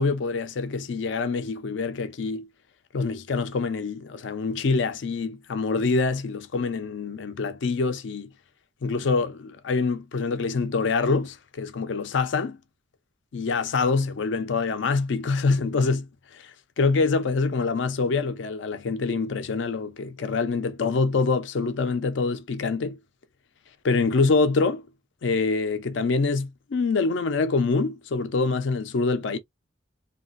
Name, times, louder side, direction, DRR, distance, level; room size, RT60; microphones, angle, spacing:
voice 1, 0.0-2.5 2.9-8.3 8.8-12.6 13.3-16.5 16.8-23.0 23.8-24.8 25.2-29.4, left 4 dB, 75° left, 0.4 m, -25 dB
3.1 x 2.4 x 2.4 m
head